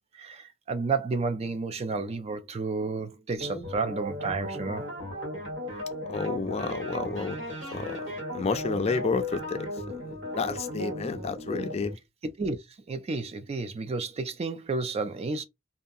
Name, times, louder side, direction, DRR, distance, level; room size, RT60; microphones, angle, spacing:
voice 1, 0.2-4.9 12.4-12.6 12.9-15.4, right 4 dB, 35° right, 0.4 m, -31 dB
sound 1, 3.4-11.9, equal, 85° right, 1.4 m, -36 dB
voice 2, 6.1-7.4 7.7-8.0 8.3-11.9, left 4 dB, 35° left, 0.4 m, -31 dB
2.7 x 2.3 x 2.5 m
head